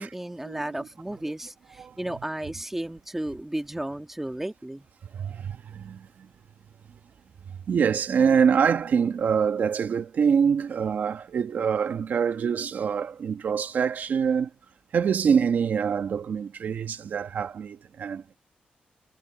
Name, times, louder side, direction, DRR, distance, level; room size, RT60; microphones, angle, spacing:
voice 1, 0.0-4.9, right 1 dB, 10° right, 1.6 m, -33 dB
voice 2, 5.1-6.3 7.7-14.5 14.9-18.4, right 7 dB, 65° right, 1.2 m, -25 dB
cardioid pair, 105°, 3 cm